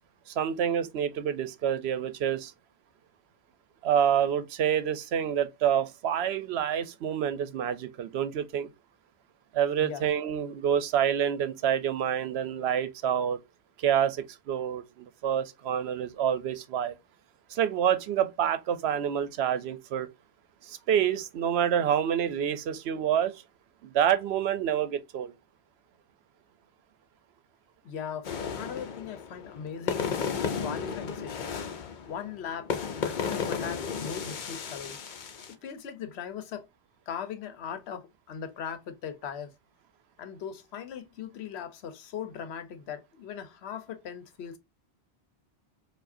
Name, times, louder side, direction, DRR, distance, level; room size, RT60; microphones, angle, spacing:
voice 1, 0.3-2.5 3.8-8.7 9.5-13.4 13.8-17.0 17.5-20.1 20.6-23.3 23.8-25.3, right 9 dB, 80° right, 0.8 m, -27 dB
voice 2, 27.8-31.6 32.1-35.0 35.5-36.7 37.1-39.5 40.2-44.6, left 8 dB, 80° left, 0.9 m, -39 dB
sound 1, 28.2-35.5, left 6 dB, 55° left, 0.7 m, -34 dB
4.7 x 2.4 x 2.5 m
omnidirectional pair, 1.1 m